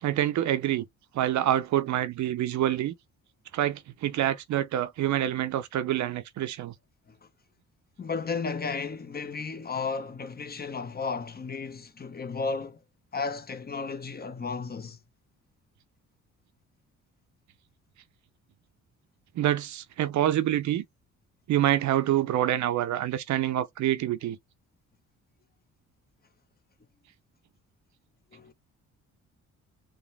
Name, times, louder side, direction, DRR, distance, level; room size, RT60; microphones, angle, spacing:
voice 1, 0.0-0.8 1.1-2.9 3.5-6.7 19.4-20.8 21.5-24.4, right 12 dB, 70° right, 0.7 m, -26 dB
voice 2, 8.0-12.8 13.1-15.0 28.3-28.5, left 4 dB, 30° left, 1.0 m, -33 dB
5.0 x 2.9 x 3.3 m
cardioid pair, 90°, 30 cm